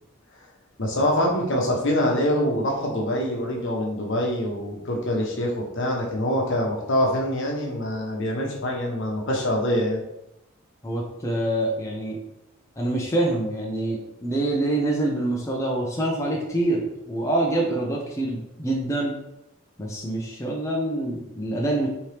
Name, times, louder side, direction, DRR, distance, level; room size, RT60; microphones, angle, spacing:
voice 1, 0.8-10.0, left 1 dB, 60° left, -1 dB, 1.0 m, -25 dB
voice 2, 10.8-12.2 12.8-19.2 19.8-21.9, right 1 dB, 15° left, -2 dB, 0.5 m, -26 dB
4.4 x 2.9 x 3.3 m, 0.85 s
head